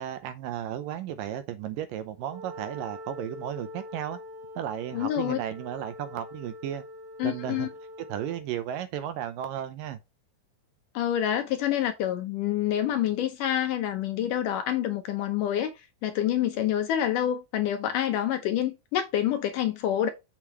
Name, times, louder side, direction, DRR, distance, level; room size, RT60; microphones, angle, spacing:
voice 1, 0.0-4.2 4.6-6.8 7.2-7.7 8.1-10.0, right 10 dB, 75° right, 2.2 m, -34 dB
Wind instrument woodwind instrument, 2.2-8.5, left 1 dB, 35° right, 2.5 m, -44 dB
voice 2, 4.9-5.4 7.2-7.7 10.9-20.1, left 11 dB, 75° left, 2.0 m, -27 dB
7.2 x 6.5 x 3.1 m
omnidirectional pair, 4.4 m